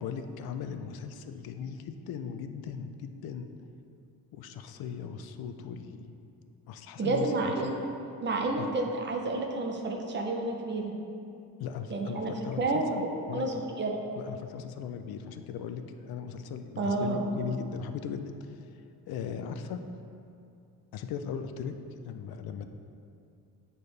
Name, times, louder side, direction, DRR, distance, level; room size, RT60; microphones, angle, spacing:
voice 1, 0.0-3.5 4.3-6.1 6.7-7.7 8.6-8.7 11.6-13.6 14.1-18.2 19.1-19.8 20.9-22.6, left 7 dB, 70° left, 8 dB, 0.5 m, -38 dB
voice 2, 7.0-7.9 8.2-10.9 11.9-14.0 16.8-17.2, right 2 dB, 30° right, 1 dB, 0.6 m, -30 dB
8.4 x 4.4 x 3.2 m, 2.6 s
cardioid pair, 180°, 39 cm